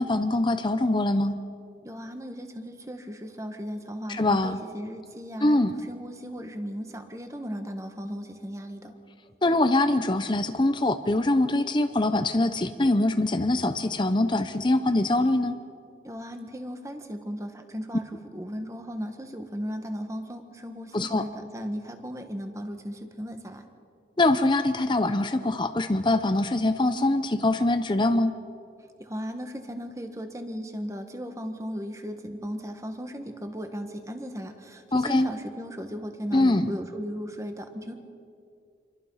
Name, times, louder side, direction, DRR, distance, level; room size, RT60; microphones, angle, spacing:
voice 1, 0.0-1.3 4.1-4.6 5.4-5.7 9.4-15.6 20.9-21.2 24.2-28.3 34.9-35.3 36.3-36.7, left 2 dB, 25° left, 8 dB, 0.7 m, -23 dB
voice 2, 1.8-5.6 5.9-9.0 16.0-23.7 29.0-38.0, equal, 20° right, 6 dB, 1.6 m, -36 dB
27.5 x 22.5 x 5.7 m, 2.4 s
head